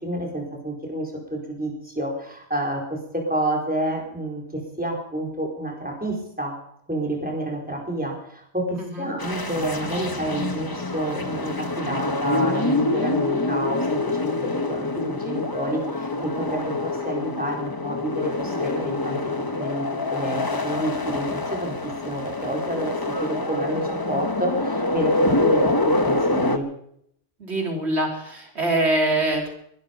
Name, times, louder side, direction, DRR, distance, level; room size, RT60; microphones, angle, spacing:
voice 1, 0.0-6.5 6.9-19.2 19.6-26.7, right 1 dB, 10° right, -2 dB, 4.4 m, -29 dB
sound 1, 9.2-26.6, left 2 dB, 20° left, 1.0 m, -26 dB
voice 2, 27.4-29.6, right 2 dB, 90° right, 1 dB, 3.5 m, -24 dB
22.5 x 12.0 x 5.3 m, 0.71 s
omnidirectional pair, 1.1 m